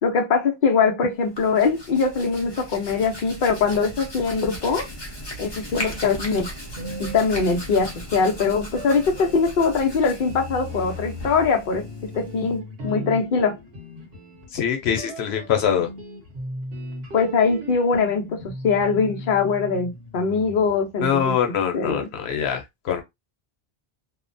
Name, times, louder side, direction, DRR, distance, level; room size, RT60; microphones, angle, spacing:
voice 1, 0.0-4.8 5.4-6.5 7.0-11.9 12.1-13.6 17.1-21.3 21.7-22.1, left 5 dB, 55° left, 0.8 m, -22 dB
Hands, 1.2-12.6, equal, 25° left, 0.8 m, -37 dB
sound 1, 6.7-8.2 8.7-21.0, left 1 dB, 70° right, 1.2 m, -37 dB
voice 2, 14.5-15.9 21.0-23.0, left 8 dB, 85° left, 0.9 m, -23 dB
2.9 x 2.1 x 2.5 m
omnidirectional pair, 1.0 m